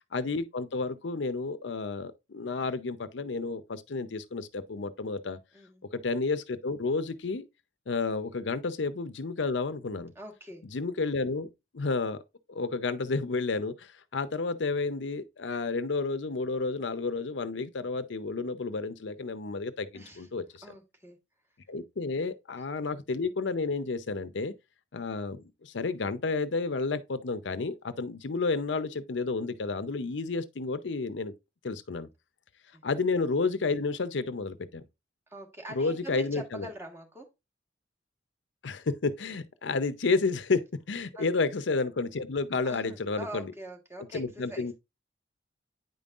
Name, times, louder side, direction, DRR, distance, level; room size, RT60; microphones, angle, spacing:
voice 1, 0.1-5.4 6.0-7.4 7.9-10.1 10.7-11.5 11.7-12.2 12.5-20.6 21.7-24.5 24.9-31.3 31.6-32.1 32.8-34.8 35.7-36.7 38.6-43.5 44.1-44.7, left 3 dB, 80° left, 0.6 m, -31 dB
voice 2, 5.5-5.9 10.1-10.6 19.9-20.3 20.6-21.2 22.2-22.3 32.7-32.8 35.3-37.3 41.1-41.3 42.6-44.7, right 1 dB, 15° right, 1.5 m, -44 dB
9.1 x 5.3 x 2.4 m
head